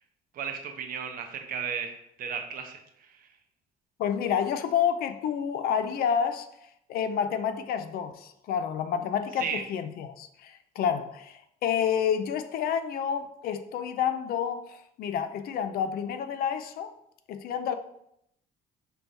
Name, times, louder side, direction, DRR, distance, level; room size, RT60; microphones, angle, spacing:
voice 1, 0.3-3.3 9.4-9.6, right 7 dB, 55° right, 5 dB, 0.6 m, -35 dB
voice 2, 4.0-6.5 6.9-16.9 17.3-17.7, left 8 dB, 65° left, 10 dB, 0.4 m, -29 dB
4.5 x 3.3 x 2.7 m, 0.75 s
cardioid pair, 110°, 17 cm